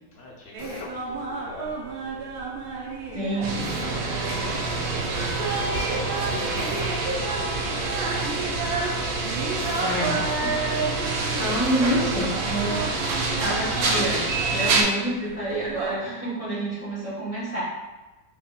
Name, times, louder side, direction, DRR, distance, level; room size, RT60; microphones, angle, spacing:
voice 1, 0.1-2.2 3.6-4.4 4.8-6.4 7.5-9.2, left 2 dB, 70° left, -5 dB, 1.6 m, -46 dB
sound 1, 0.5-16.0, right 3 dB, 70° right, 0.9 m, -32 dB
Drill, 0.6-1.0 3.6-4.0 6.6-7.0 9.6-10.0, left 5 dB, 85° left, 1.3 m, -39 dB
voice 2, 3.1-3.6 9.8-10.7 11.4-12.9 13.4-17.6, right 1 dB, 30° left, -9 dB, 0.6 m, -28 dB
sound 2, 3.4-14.8, right 3 dB, 85° right, 1.3 m, -27 dB
3.7 x 2.1 x 4.0 m, 1.1 s
omnidirectional pair, 2.0 m